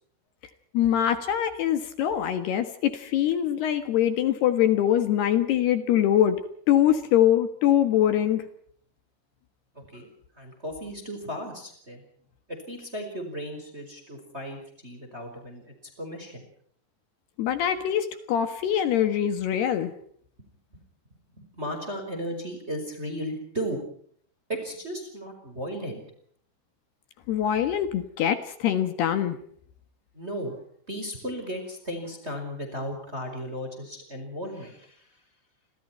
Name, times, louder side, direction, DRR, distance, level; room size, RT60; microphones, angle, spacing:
voice 1, 0.7-6.4 6.7-8.5 17.4-19.9 27.3-29.4, left 10 dB, 65° left, 9 dB, 3.0 m, -23 dB
voice 2, 9.7-10.1 10.4-12.0 12.5-16.5 20.7-20.8 21.4-23.8 24.5-26.0 30.1-30.6 30.9-35.1, equal, 15° right, 5 dB, 4.7 m, -35 dB
30.0 x 25.5 x 4.5 m, 0.63 s
omnidirectional pair, 5.9 m